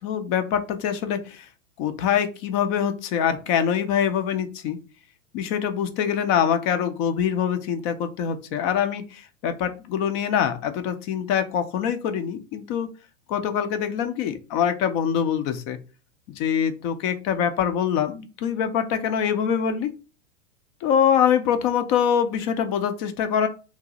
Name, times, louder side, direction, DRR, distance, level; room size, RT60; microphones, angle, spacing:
voice 1, 0.0-1.5 1.8-4.8 5.3-12.9 13.3-15.8 16.4-19.9 20.8-23.5, left 8 dB, 30° left, 8 dB, 0.5 m, -24 dB
3.0 x 2.6 x 3.7 m, 0.31 s
figure-of-eight pair, 100°, 40 cm